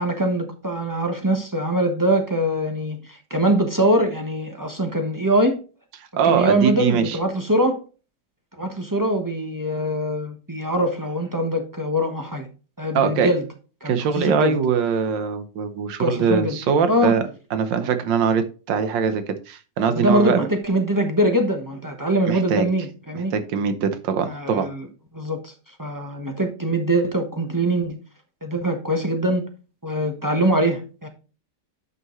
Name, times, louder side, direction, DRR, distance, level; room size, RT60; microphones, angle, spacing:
voice 1, 0.0-5.6 6.2-7.8 8.6-12.5 12.8-13.4 13.8-14.6 16.0-16.6 16.9-17.2 19.9-23.3 24.2-24.9 25.1-25.5 25.8-28.0 28.4-29.4 29.8-31.1, right 1 dB, 20° right, 0.6 m, -23 dB
voice 2, 6.1-7.2 13.0-13.3 13.9-17.2 17.5-20.5 22.3-22.7 23.3-24.7, right 6 dB, 85° right, 1.6 m, -22 dB
9.5 x 5.7 x 3.1 m
omnidirectional pair, 1.9 m